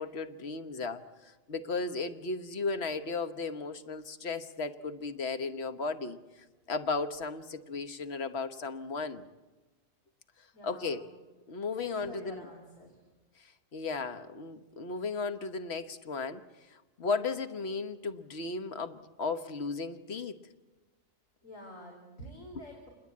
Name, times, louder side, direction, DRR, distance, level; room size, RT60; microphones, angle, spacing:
voice 1, 0.0-6.2 6.7-9.3 10.6-11.0 11.5-12.5 13.4-16.4 16.7-20.4, left 4 dB, 50° left, 10 dB, 1.3 m, -35 dB
voice 2, 10.5-11.1 11.8-13.0 21.4-22.9, equal, 70° left, 0 dB, 4.7 m, -48 dB
28.0 x 20.5 x 8.5 m, 1.2 s
omnidirectional pair, 1.4 m